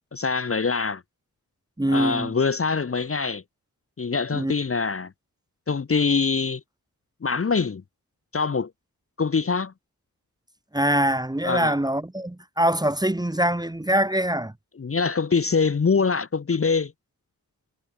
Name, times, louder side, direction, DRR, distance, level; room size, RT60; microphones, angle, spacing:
voice 1, 0.1-1.0 1.9-3.4 4.0-5.1 5.7-6.6 7.2-7.8 8.3-8.7 9.2-9.7 11.4-11.7 14.8-16.9, left 5 dB, 35° left, 0.7 m, -24 dB
voice 2, 1.8-2.3 4.3-4.5 10.7-14.5, right 1 dB, 10° right, 0.9 m, -23 dB
cardioid pair, 45°, 37 cm